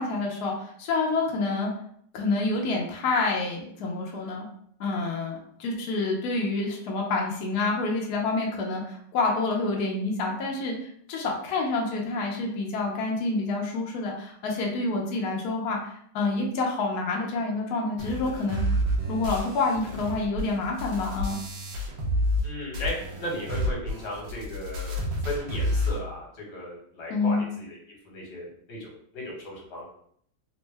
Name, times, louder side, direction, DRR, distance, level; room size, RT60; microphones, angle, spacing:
voice 1, 0.0-1.7 2.1-4.5 4.8-18.6 19.1-21.4 27.1-27.4, left 3 dB, 80° left, 0 dB, 0.8 m, -28 dB
sound 1, 18.0-22.5 22.7-26.0, equal, 70° right, 1.2 m, -29 dB
voice 2, 22.4-25.0 25.2-27.8 28.0-29.8, equal, 55° left, -2 dB, 1.5 m, -36 dB
3.5 x 2.1 x 3.3 m, 0.64 s
omnidirectional pair, 2.3 m